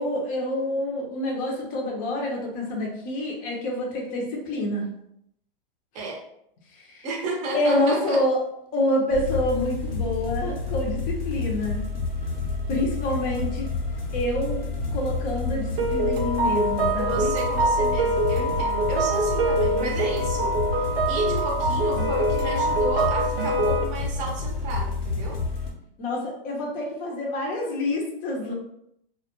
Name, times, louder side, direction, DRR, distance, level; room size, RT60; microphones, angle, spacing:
voice 1, 0.0-4.9 6.8-7.1 7.5-8.4 8.7-11.8 12.7-13.7 14.1-14.6 14.9-17.3 26.0-28.5, left 1 dB, 30° left, -1 dB, 0.6 m, -27 dB
voice 2, 7.0-8.2 17.0-25.4, right 2 dB, 25° right, -1 dB, 0.6 m, -33 dB
sound 1, 9.1-25.7, left 3 dB, 85° left, 0.9 m, -29 dB
sound 2, 15.8-23.8, right 1 dB, 80° right, 0.6 m, -24 dB
2.2 x 2.0 x 2.9 m, 0.75 s
hypercardioid pair, 120°, 29 cm